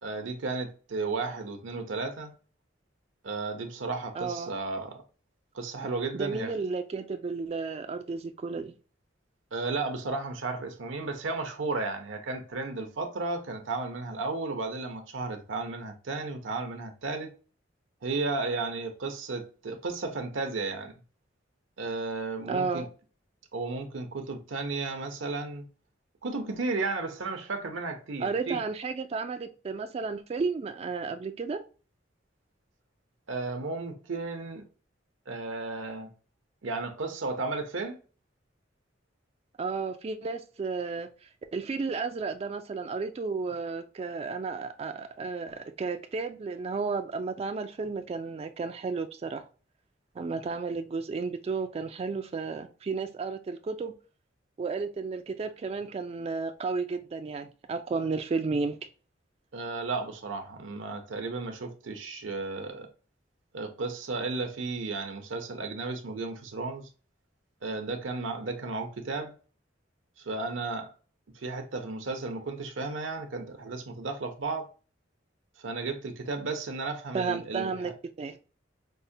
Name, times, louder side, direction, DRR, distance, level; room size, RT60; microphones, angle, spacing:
voice 1, 0.0-2.3 3.2-5.0 5.5-6.5 9.5-17.3 18.0-20.9 21.8-22.8 23.5-25.7 26.2-28.6 33.3-34.6 35.3-36.1 36.6-38.0 59.5-62.9 63.5-66.9 67.6-69.3 70.2-70.9 71.4-74.7 75.6-77.7, right 3 dB, 75° right, 0.7 m, -34 dB
voice 2, 4.1-4.5 6.1-8.7 22.5-22.9 28.2-31.6 39.6-49.4 50.2-53.9 54.6-58.8 77.1-77.9 78.2-78.4, right 4 dB, 30° right, 0.3 m, -33 dB
5.3 x 2.1 x 2.6 m
head